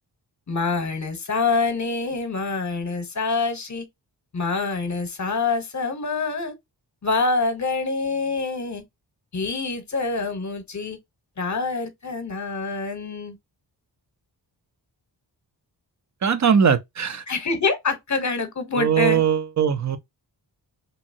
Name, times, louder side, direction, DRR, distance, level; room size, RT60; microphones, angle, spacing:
voice 1, 0.5-3.9 4.3-6.5 7.0-8.8 9.3-11.0 11.4-13.4 17.3-19.2, left 4 dB, 40° left, 0.9 m, -26 dB
voice 2, 16.2-17.2 18.7-20.0, right 7 dB, 40° right, 0.6 m, -20 dB
3.0 x 2.7 x 2.6 m
cardioid pair, 60°, 43 cm